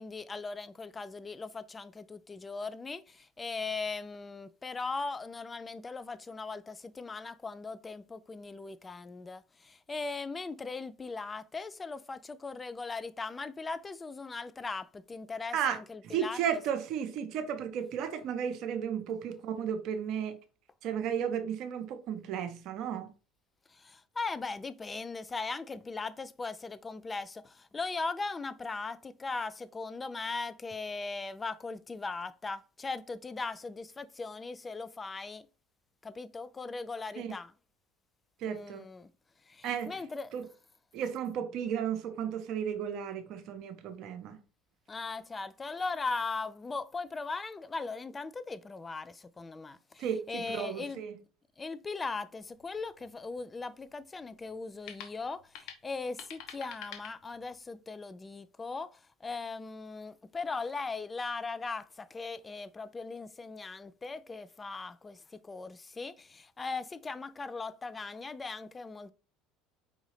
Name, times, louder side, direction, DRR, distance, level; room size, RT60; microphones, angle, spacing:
voice 1, 0.0-16.6 23.7-35.5 36.0-37.5 38.5-39.1 39.5-40.3 44.9-51.0 51.6-69.1, left 4 dB, 25° left, 0.3 m, -39 dB
voice 2, 15.5-20.4 20.8-23.1 37.2-37.3 38.4-38.9 39.6-40.0 40.3-40.4 40.9-44.4 50.0-51.1, right 8 dB, 55° right, 0.7 m, -34 dB
sound 1, 52.4-57.8, left 9 dB, 65° left, 0.9 m, -50 dB
4.9 x 2.7 x 3.1 m
hypercardioid pair, 70°, 0 cm